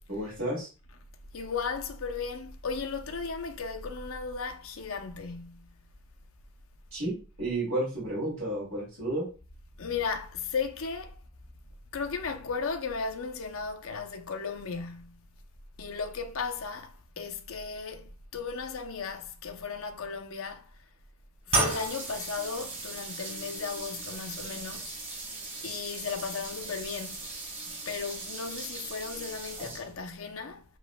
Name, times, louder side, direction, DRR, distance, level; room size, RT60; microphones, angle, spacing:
voice 1, 0.1-0.7 6.9-9.3, right 1 dB, 65° right, 2.6 m, -32 dB
voice 2, 1.3-5.7 9.8-11.2 11.9-15.2 15.8-20.7 21.5-25.0 25.6-27.2 27.7-30.6, left 5 dB, 75° left, 0.7 m, -35 dB
sound 1, 21.5-30.1, right 2 dB, 30° right, 2.3 m, -36 dB
7.6 x 3.0 x 2.2 m
head